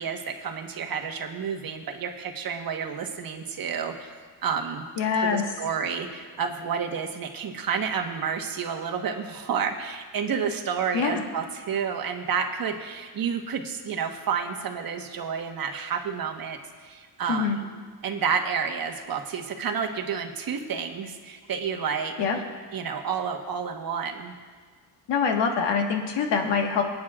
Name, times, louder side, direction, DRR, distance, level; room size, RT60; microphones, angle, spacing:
voice 1, 0.0-4.1 4.4-4.8 5.2-17.7 18.0-22.1 22.7-24.3, right 6 dB, 55° right, 3 dB, 1.4 m, -30 dB
voice 2, 5.0-5.4 10.9-11.2 17.3-17.6 22.2-22.4 25.1-26.8, left 6 dB, 90° left, 2 dB, 1.7 m, -24 dB
24.5 x 9.5 x 2.5 m, 1.5 s
cardioid pair, 110°, 42 cm